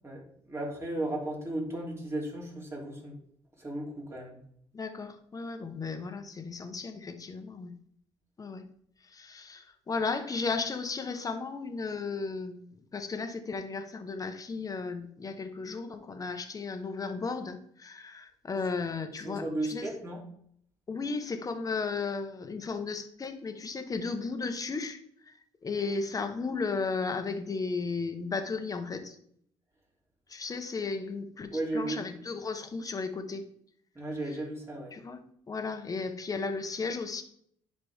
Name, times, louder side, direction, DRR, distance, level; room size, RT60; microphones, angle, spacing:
voice 1, 0.0-3.2 3.6-4.4 5.7-5.8 19.2-20.2 31.5-32.0 33.9-35.0, right 1 dB, 20° right, -2 dB, 3.0 m, -35 dB
voice 2, 4.7-7.7 8.4-8.6 9.0-19.9 20.9-25.3 25.6-29.2 30.3-33.4 34.9-35.2 35.5-37.2, left 4 dB, 30° left, 7 dB, 1.1 m, -35 dB
10.5 x 4.4 x 3.5 m, 0.67 s
cardioid pair, 85°, 12 cm